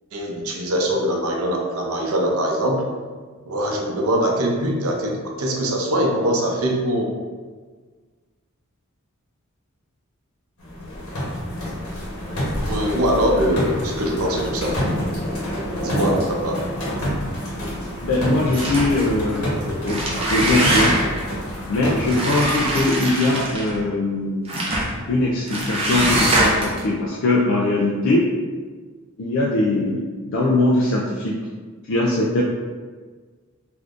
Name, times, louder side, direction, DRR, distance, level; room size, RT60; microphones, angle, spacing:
voice 1, 0.1-2.9 3.4-7.1 12.7-14.7 15.8-16.6, equal, 75° right, 0 dB, 0.6 m, -22 dB
sound 1, 10.6-22.8, equal, 90° left, 1.1 m, -28 dB
voice 2, 18.0-21.0 21.7-24.6 25.1-28.3 29.2-31.4 31.9-32.4, left 2 dB, 60° left, -4 dB, 0.4 m, -21 dB
sound 2, 18.5-19.2 19.7-21.2 22.1-23.8 24.5-24.9 25.5-26.8, right 1 dB, 25° right, 0.5 m, -22 dB
3.4 x 2.6 x 2.5 m, 1.5 s
head